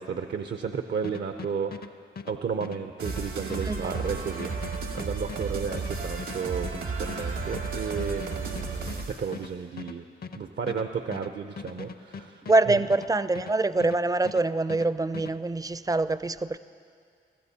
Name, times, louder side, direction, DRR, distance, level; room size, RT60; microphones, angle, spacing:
voice 1, 0.0-2.0 2.2-10.0 10.4-12.8, right 6 dB, 60° right, 0.6 m, -33 dB
sound 1, 1.0-14.0 14.2-15.3, left 5 dB, 50° left, 0.6 m, -41 dB
sound 2, 3.0-9.3, right 4 dB, 85° right, 1.5 m, -33 dB
voice 2, 3.6-4.0 12.4-16.6, right 2 dB, 20° right, 0.4 m, -25 dB
22.0 x 15.0 x 2.8 m
supercardioid pair, 45°, 20 cm